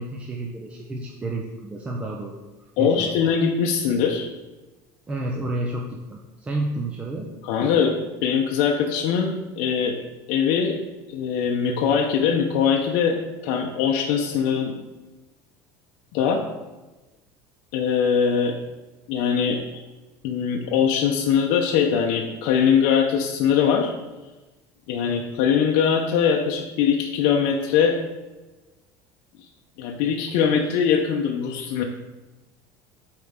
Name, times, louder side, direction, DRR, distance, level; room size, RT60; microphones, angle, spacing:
voice 1, 0.0-2.4 2.8-3.1 5.1-7.3 25.0-25.2, right 2 dB, 15° right, 0 dB, 0.5 m, -30 dB
voice 2, 2.8-4.3 7.4-7.9 8.2-10.0 10.3-10.8 11.1-13.2 13.4-14.8 16.1-16.4 17.7-18.5 19.1-19.6 20.2-23.9 24.9-28.0 29.8-31.8, left 7 dB, 65° left, 1 dB, 0.7 m, -21 dB
7.6 x 4.4 x 3.6 m, 1.1 s
cardioid pair, 165°, 9 cm